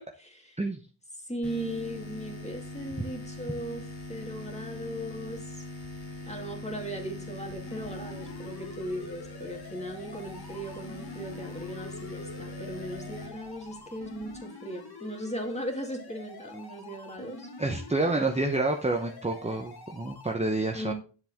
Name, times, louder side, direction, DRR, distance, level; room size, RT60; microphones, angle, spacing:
voice 1, 0.2-0.6 1.2-5.6 6.3-17.5 20.7-20.9, equal, 15° left, 2 dB, 2.2 m, -38 dB
sound 1, 1.4-14.4, left 2 dB, 75° left, 4.0 m, -42 dB
sound 2, 7.7-20.3, left 3 dB, 50° left, 1.7 m, -46 dB
voice 2, 17.6-20.9, right 2 dB, 15° right, 3 dB, 0.8 m, -28 dB
9.7 x 7.6 x 3.5 m, 0.37 s
wide cardioid pair, 100°, 47 cm